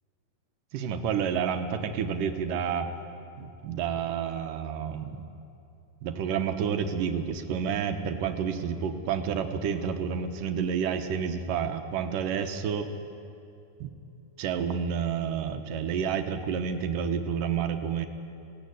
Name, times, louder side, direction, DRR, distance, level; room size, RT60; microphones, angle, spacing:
voice 1, 0.7-2.9 3.4-5.2 6.0-12.9 13.8-13.9 14.4-18.1, right 7 dB, 85° right, 7 dB, 2.7 m, -29 dB
20.5 x 17.5 x 9.4 m, 2.7 s
omnidirectional pair, 3.7 m